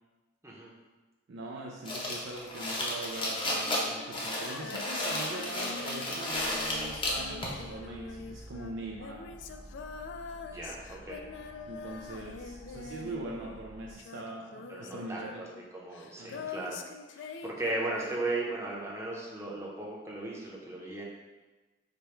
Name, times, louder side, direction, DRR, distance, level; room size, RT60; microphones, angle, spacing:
voice 1, 1.3-9.4 11.4-15.4 16.2-16.5, right 2 dB, 70° right, -2 dB, 0.4 m, -42 dB
sound 1, 1.9-7.6, left 1 dB, 25° left, 0.6 m, -33 dB
Female singing, 3.4-13.7 14.0-18.4, left 5 dB, 70° left, 0.3 m, -44 dB
sound 2, 6.3-14.0, equal, 40° right, 1.2 m, -50 dB
voice 2, 10.5-11.2 14.7-15.5 15.7-16.8 17.1-21.0, right 2 dB, 15° right, -4 dB, 0.7 m, -36 dB
5.0 x 2.2 x 4.4 m, 1.2 s
head